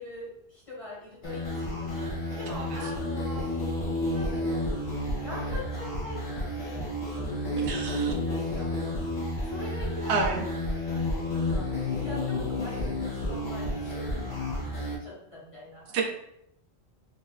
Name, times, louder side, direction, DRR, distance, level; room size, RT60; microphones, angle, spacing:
voice 1, 0.0-3.5 4.1-4.7 5.1-9.0 9.4-10.5 10.9-16.0, left 1 dB, 30° left, -6 dB, 1.5 m, -43 dB
sound 1, 1.2-14.9, left 1 dB, 45° left, 1.0 m, -31 dB
voice 2, 2.5-2.8 7.7-8.1 10.1-10.4 15.9-16.0, right 4 dB, 75° right, 2 dB, 0.9 m, -29 dB
3.3 x 3.1 x 2.3 m, 0.76 s
omnidirectional pair, 1.2 m